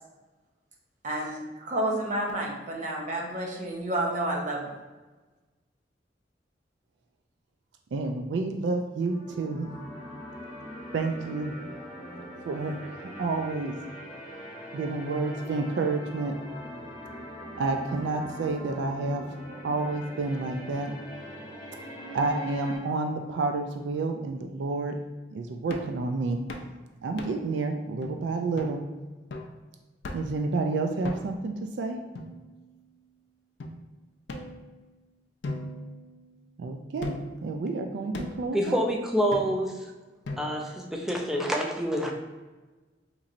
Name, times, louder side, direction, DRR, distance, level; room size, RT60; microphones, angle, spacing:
voice 1, 1.0-4.6, right 1 dB, 45° right, -1 dB, 0.7 m, -30 dB
voice 2, 7.9-9.7 10.9-11.5 12.4-13.8 14.7-16.4 17.6-19.3 19.6-20.9 22.1-25.0 25.3-26.4 27.0-28.9 30.1-32.0 36.6-37.2 37.4-38.9, right 3 dB, 75° right, 4 dB, 0.3 m, -29 dB
sound 1, 9.1-22.8, equal, 30° left, 0.9 m, -42 dB
sound 2, 25.7-26.0 26.5-26.7 27.2-27.5 28.0-28.1 28.6-28.8 29.3-29.6 30.0-30.4 31.0-31.5 32.1-32.9 33.6-33.7 34.3-35.0 35.4-36.5 37.0-37.4 38.1-38.5 39.3-39.8 40.2-40.8, left 1 dB, 80° left, 0.4 m, -38 dB
voice 3, 38.5-39.8 40.4-42.1, equal, 5° right, 0 dB, 0.4 m, -27 dB
3.9 x 3.0 x 2.5 m, 1.2 s
head